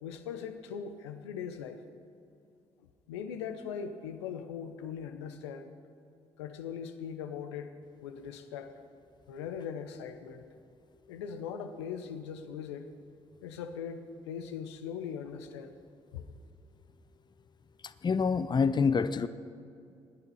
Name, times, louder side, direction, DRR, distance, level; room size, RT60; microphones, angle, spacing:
voice 1, 0.0-1.8 2.8-5.7 6.4-8.7 9.3-10.5 11.1-12.9 13.4-15.8 16.1-16.2 19.2-19.3, left 7 dB, 85° left, 7 dB, 0.9 m, -40 dB
voice 2, 18.0-19.3, left 5 dB, 30° left, 13 dB, 0.6 m, -26 dB
17.0 x 10.5 x 5.6 m, 2.5 s
hypercardioid pair, 45°, 14 cm